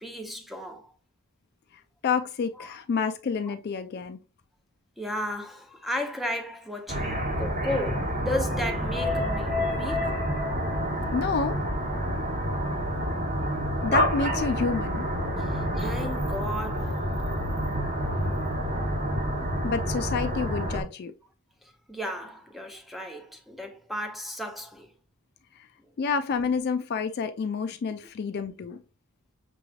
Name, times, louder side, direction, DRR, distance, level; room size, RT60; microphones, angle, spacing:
voice 1, 0.0-0.9 2.6-2.8 3.5-3.6 5.0-10.2 11.9-12.1 15.4-17.0 21.6-24.9, left 1 dB, ahead, 0.6 m, -34 dB
voice 2, 2.0-4.2 11.1-11.6 13.8-15.1 19.6-21.1 25.6-25.7 26.0-28.8, left 5 dB, 45° left, 0.3 m, -29 dB
sound 1, 6.9-20.8, equal, 35° right, 1.1 m, -28 dB
6.0 x 3.1 x 2.3 m
head